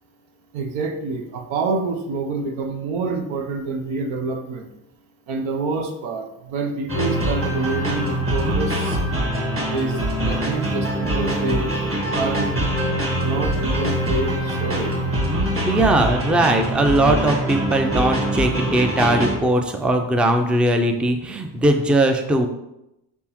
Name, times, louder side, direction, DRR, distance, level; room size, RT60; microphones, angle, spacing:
voice 1, 0.5-4.7 5.3-9.0 9.7-10.0 10.2-11.6 12.2-12.6 13.2-14.9, right 3 dB, 80° right, 4 dB, 0.8 m, -27 dB
sound 1, 6.9-19.3, right 1 dB, 30° right, 1.4 m, -23 dB
voice 2, 15.7-22.5, right 1 dB, 5° right, 5 dB, 0.3 m, -19 dB
4.2 x 3.5 x 3.0 m, 0.89 s
supercardioid pair, 65°, 46 cm